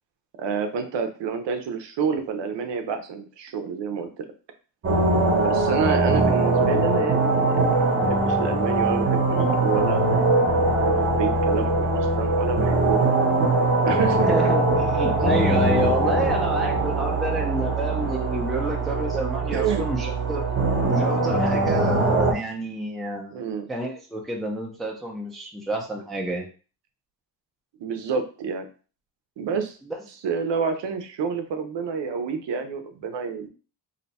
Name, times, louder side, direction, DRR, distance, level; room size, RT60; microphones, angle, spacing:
voice 1, 0.4-4.3 5.4-10.3 10.7-13.0 13.8-14.5 19.5-19.8 23.3-23.7 27.8-28.7 29.4-29.8 30.2-33.5, right 6 dB, 70° right, 7 dB, 0.6 m, -28 dB
sound 1, 4.8-22.3, right 2 dB, 30° right, 0.8 m, -22 dB
voice 2, 14.3-20.4 20.9-26.5 29.8-30.0, right 1 dB, ahead, 0 dB, 0.4 m, -29 dB
2.7 x 2.2 x 4.0 m, 0.36 s
wide cardioid pair, 165°, 44 cm